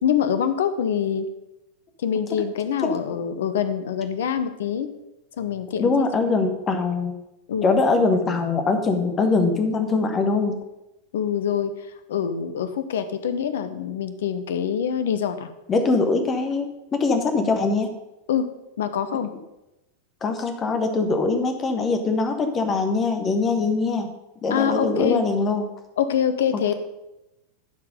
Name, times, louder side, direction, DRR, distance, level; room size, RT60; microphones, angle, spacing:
voice 1, 0.0-1.3 2.0-4.9 5.4-6.0 7.5-7.8 11.1-11.7 12.1-15.5 18.3-18.4 18.8-19.3 24.5-25.2 26.0-26.7, left 8 dB, 60° left, 11 dB, 0.8 m, -25 dB
voice 2, 2.8-3.2 5.8-7.1 7.6-10.6 15.7-16.7 16.9-17.9 20.2-24.1 24.4-25.6 26.5-26.7, left 3 dB, 25° left, 6 dB, 1.3 m, -22 dB
11.5 x 4.7 x 5.4 m, 0.93 s
figure-of-eight pair, 90°, 0 cm